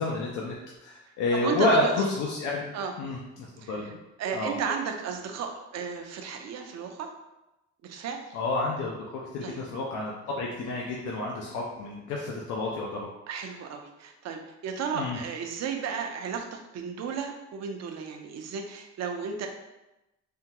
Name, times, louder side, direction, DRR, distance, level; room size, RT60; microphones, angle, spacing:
voice 1, 0.0-2.7 3.0-3.9 4.3-4.6 8.3-13.1 14.9-15.2, left 2 dB, 80° left, -2 dB, 0.5 m, -29 dB
voice 2, 1.3-1.9 2.7-2.9 3.6-3.9 4.2-7.1 7.8-8.2 9.4-9.6 13.3-19.5, right 6 dB, 60° right, 3 dB, 0.5 m, -34 dB
3.5 x 2.2 x 2.8 m, 0.96 s
cardioid pair, 90°, 30 cm